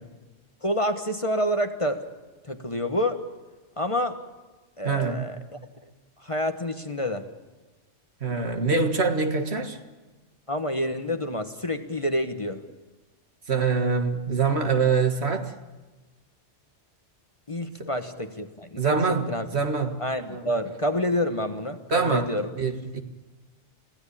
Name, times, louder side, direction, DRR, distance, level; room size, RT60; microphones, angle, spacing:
voice 1, 0.6-2.1 2.4-3.2 3.8-4.2 4.8-5.4 6.2-7.2 10.5-12.6 17.5-19.5 20.0-22.5, left 1 dB, 25° left, 1.4 m, -28 dB
voice 2, 4.8-5.3 8.2-9.8 13.5-15.5 17.8-17.9 18.8-20.0 20.3-20.4 21.9-23.0, right 4 dB, 60° right, 2.0 m, -25 dB
26.0 x 16.5 x 8.6 m
omnidirectional pair, 1.2 m